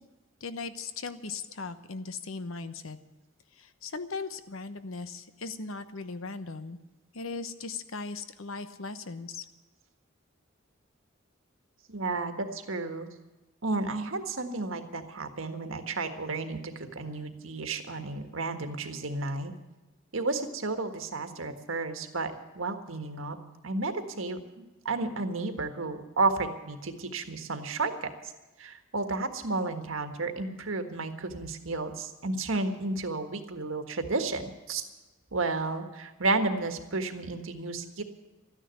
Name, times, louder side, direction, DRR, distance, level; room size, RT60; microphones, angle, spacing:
voice 1, 0.4-3.0 3.6-6.8 7.1-9.4, left 4 dB, 85° left, 11 dB, 1.0 m, -38 dB
voice 2, 11.9-13.1 13.6-19.5 20.1-23.3 23.6-28.1 28.6-34.8 35.3-38.0, right 3 dB, 80° right, 7 dB, 1.6 m, -32 dB
13.5 x 10.0 x 9.4 m, 1.1 s
head